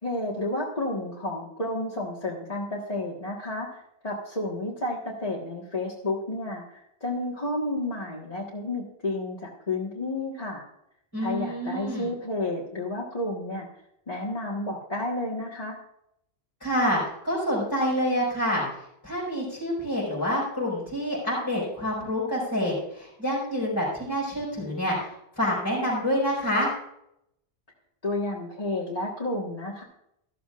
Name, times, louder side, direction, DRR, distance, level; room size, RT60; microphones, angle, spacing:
voice 1, 0.0-10.6 11.2-13.7 14.1-15.8 28.0-29.8, left 2 dB, 35° left, -5 dB, 1.8 m, -31 dB
voice 2, 11.1-12.1 16.6-18.6 19.0-26.7, equal, 20° left, -9 dB, 5.7 m, -27 dB
14.0 x 13.5 x 2.5 m, 0.77 s
omnidirectional pair, 1.1 m